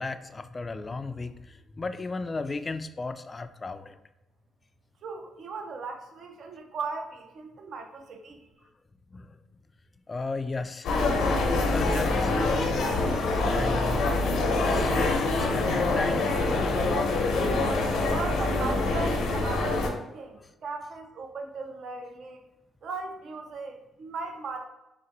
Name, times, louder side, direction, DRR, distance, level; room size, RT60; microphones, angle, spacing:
voice 1, 0.0-4.0 9.1-9.4 10.1-11.1 11.5-12.7 13.2-14.1 14.7-17.1, left 3 dB, 30° left, 9 dB, 0.3 m, -35 dB
voice 2, 5.0-8.5 18.1-22.4 22.8-24.7, right 4 dB, 60° right, 4 dB, 0.5 m, -37 dB
sound 1, 10.8-19.9, left 2 dB, 80° left, 0.8 m, -25 dB
4.1 x 2.5 x 3.8 m, 0.95 s
cardioid pair, 90°, 0 cm